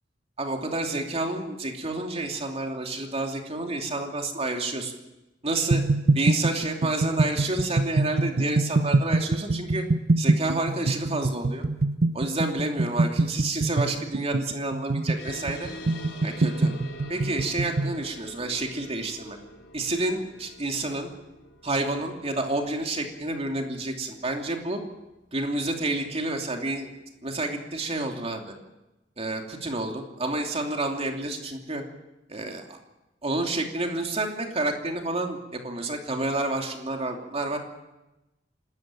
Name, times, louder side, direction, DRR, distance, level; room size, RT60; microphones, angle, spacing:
voice 1, 0.4-4.9 5.4-5.8 6.1-9.8 10.2-11.6 12.1-15.7 16.2-16.7 17.1-19.4 19.7-21.1 21.6-24.8 25.3-26.9 27.2-28.5 29.2-31.8 32.3-32.8 33.2-37.6, right 2 dB, 35° right, 3 dB, 2.8 m, -29 dB
sound 1, 5.7-18.0, right 2 dB, 60° right, 0.7 m, -24 dB
sound 2, 15.2-26.1, left 1 dB, 75° left, 4.6 m, -46 dB
27.0 x 13.5 x 9.1 m, 1.0 s
head